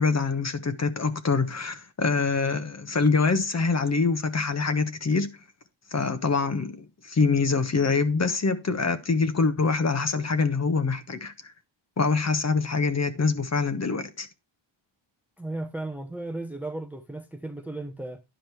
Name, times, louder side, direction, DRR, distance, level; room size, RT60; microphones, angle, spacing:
voice 1, 0.0-5.3 5.9-11.5 12.0-14.3, left 4 dB, 35° left, 1.1 m, -25 dB
voice 2, 15.4-18.2, right 2 dB, 5° right, 0.8 m, -35 dB
10.5 x 5.1 x 4.6 m
cardioid pair, 100°, 47 cm